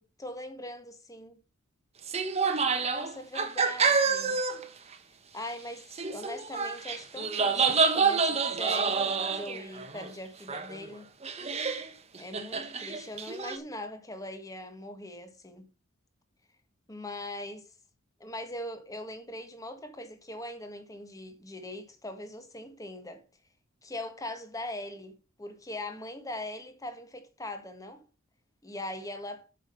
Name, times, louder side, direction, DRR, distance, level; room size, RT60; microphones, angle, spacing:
voice 1, 0.2-1.4 2.7-4.4 5.3-11.1 12.2-15.7 16.9-17.7 18.2-23.2 23.8-28.0 28.6-29.5, left 1 dB, 15° left, 1.6 m, -41 dB
sound 1, 2.0-4.6 4.9-5.0 5.9-10.1 10.5-10.9 11.2-11.9 12.1-13.6, right 5 dB, 30° right, 1.2 m, -28 dB
8.4 x 7.5 x 5.3 m
head